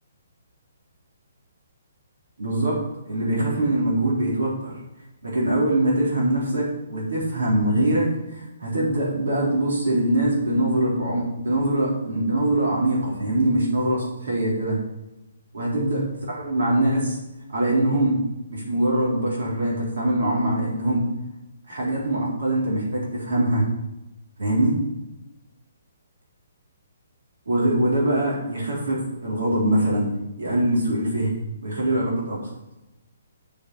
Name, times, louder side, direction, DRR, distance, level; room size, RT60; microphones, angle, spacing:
voice 1, 2.4-2.8 3.1-4.8 5.2-14.8 15.5-17.2 17.5-18.2 18.5-21.0 21.7-23.6 24.4-24.7 27.5-30.1 30.4-31.3 31.6-32.4, right 1 dB, 75° right, -4 dB, 3.9 m, -23 dB
7.1 x 6.8 x 6.4 m, 0.96 s
figure-of-eight pair, 135°, 0 cm